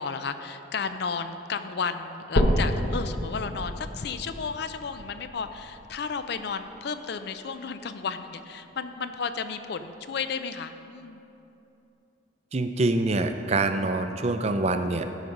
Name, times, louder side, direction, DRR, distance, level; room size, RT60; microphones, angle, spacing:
voice 1, 0.0-11.2, left 5 dB, 60° left, 10 dB, 0.4 m, -33 dB
sound 1, 2.4-6.4 6.9-7.0 7.6-7.7 8.0-8.1 8.9-9.0, equal, 75° left, 1.0 m, -29 dB
voice 2, 12.5-15.1, right 2 dB, 35° right, 7 dB, 0.4 m, -25 dB
12.0 x 5.0 x 5.3 m, 2.9 s
head